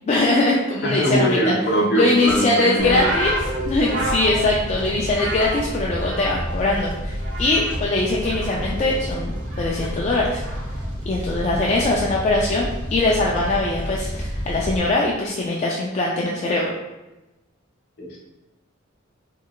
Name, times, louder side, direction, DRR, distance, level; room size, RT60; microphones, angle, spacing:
voice 1, 0.1-1.5 1.9-3.4 3.7-10.4 11.1-16.7, left 2 dB, 35° left, -3 dB, 0.3 m, -22 dB
voice 2, 0.8-3.0 18.0-18.2, equal, 55° left, -2 dB, 0.8 m, -21 dB
Fire, 2.8-14.8, equal, 40° right, 1.0 m, -30 dB
sound 1, 2.8-6.7 7.0-7.9 8.2-10.9 11.7-12.1, right 1 dB, 65° right, 0.8 m, -31 dB
3.8 x 3.2 x 2.3 m, 1.0 s
head